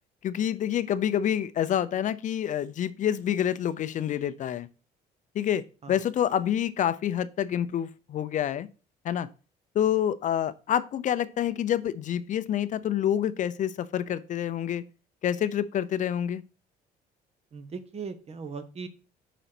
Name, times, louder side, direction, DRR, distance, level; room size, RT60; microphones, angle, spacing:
voice 1, 0.2-4.7 5.3-8.7 9.0-9.3 9.7-14.8 15.2-16.4, left 10 dB, 50° left, 0.4 m, -27 dB
voice 2, 17.5-18.9, right 5 dB, 40° right, 0.9 m, -38 dB
5.0 x 4.0 x 5.9 m
cardioid pair, 110°, 17 cm